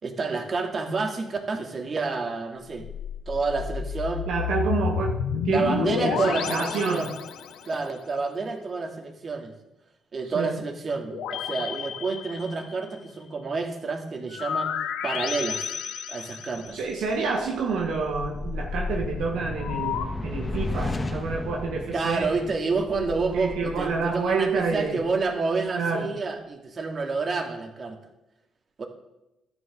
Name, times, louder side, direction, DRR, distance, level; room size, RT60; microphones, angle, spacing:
voice 1, 0.0-2.9 3.3-4.3 5.5-7.1 7.6-9.5 10.1-14.7 15.0-15.7 16.1-16.8 21.9-28.0 28.8-28.9, right 4 dB, 45° right, 3 dB, 2.8 m, -29 dB
sound 1, 2.7-7.8 11.1-12.9 14.3-16.9 19.6-20.1, left 8 dB, 80° left, 1.1 m, -31 dB
voice 2, 4.3-7.1 10.3-10.6 16.7-22.3 23.3-25.0 25.7-26.1, right 4 dB, 80° right, 1 dB, 1.8 m, -28 dB
sound 2, 16.9-25.3, left 3 dB, 25° left, 1.8 m, -34 dB
12.5 x 10.5 x 6.8 m, 0.92 s
supercardioid pair, 60°, 0 cm